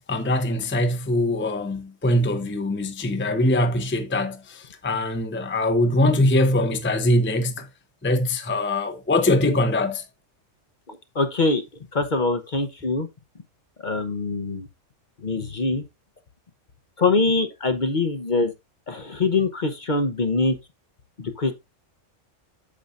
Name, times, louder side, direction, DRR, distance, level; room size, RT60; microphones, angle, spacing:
voice 1, 0.1-7.7 8.0-10.0, left 1 dB, 10° left, 0.6 m, -22 dB
voice 2, 10.9-11.6 11.9-13.1 13.8-14.7 15.2-15.8 17.0-18.5 18.9-20.5 21.2-21.5, left 3 dB, 40° left, 0.9 m, -23 dB
8.5 x 6.9 x 2.5 m
omnidirectional pair, 1.3 m